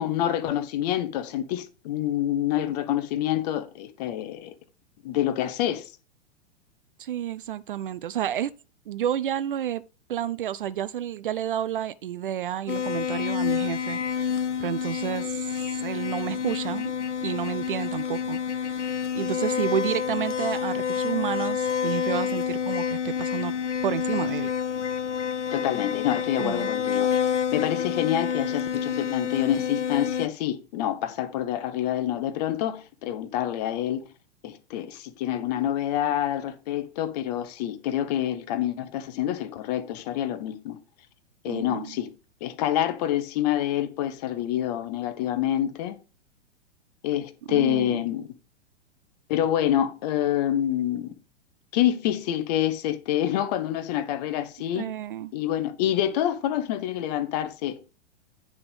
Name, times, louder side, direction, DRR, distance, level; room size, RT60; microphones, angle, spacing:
voice 1, 0.0-4.5 5.0-5.9 25.5-34.0 34.4-40.8 41.4-42.1 42.4-46.0 47.0-48.3 49.3-51.1 51.7-54.9 55.3-57.9, left 11 dB, 35° left, 1.0 m, -27 dB
voice 2, 7.0-8.5 8.9-9.8 10.1-16.9 17.2-18.9 19.1-23.5 23.8-24.5 26.4-26.7 41.5-42.0 47.5-48.0 54.7-55.3, right 11 dB, 50° right, 0.4 m, -30 dB
sound 1, 12.7-30.3, left 7 dB, 85° left, 0.5 m, -28 dB
9.6 x 3.6 x 5.4 m
figure-of-eight pair, 105°, 35 cm